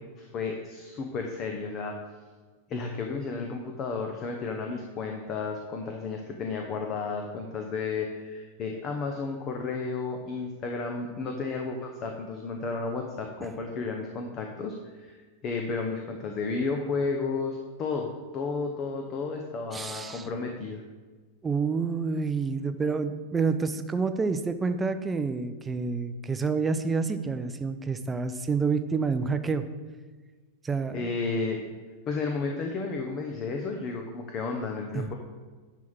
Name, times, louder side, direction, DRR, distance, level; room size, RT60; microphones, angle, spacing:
voice 1, 0.2-2.0 2.7-15.2 15.4-20.8 30.9-31.6 32.1-35.1, left 4 dB, 30° left, 3 dB, 0.8 m, -32 dB
voice 2, 19.7-20.3 21.4-29.6 30.6-31.1 34.9-35.1, right 4 dB, 15° right, 9 dB, 0.6 m, -28 dB
10.5 x 3.6 x 6.0 m, 1.4 s
figure-of-eight pair, 90°, 0 cm